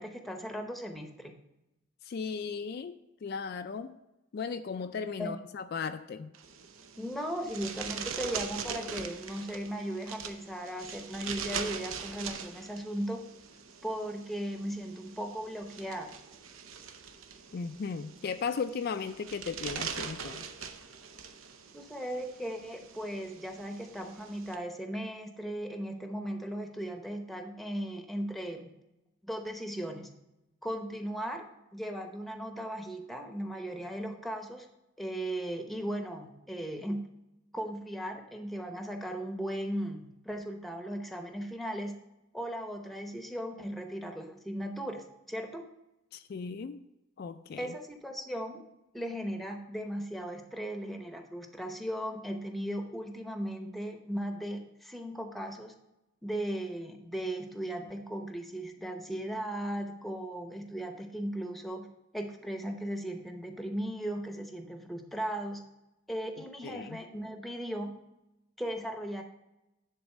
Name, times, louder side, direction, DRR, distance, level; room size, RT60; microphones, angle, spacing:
voice 1, 0.0-1.3 5.2-5.4 7.0-13.2 13.8-16.1 21.7-28.7 29.2-30.1 30.6-31.5 31.7-34.7 35.0-37.0 37.5-42.0 42.3-45.6 47.6-48.6 48.9-55.7 56.2-61.9 62.1-65.6 66.1-67.9 68.6-69.2, equal, ahead, 5 dB, 0.8 m, -37 dB
voice 2, 2.0-3.9 4.3-6.3 17.5-20.5 46.1-46.8 47.2-47.7 66.6-67.0, left 5 dB, 50° left, 9 dB, 0.3 m, -36 dB
sound 1, 6.3-24.5, right 6 dB, 85° right, 0.8 m, -42 dB
10.5 x 4.0 x 6.3 m, 0.92 s
head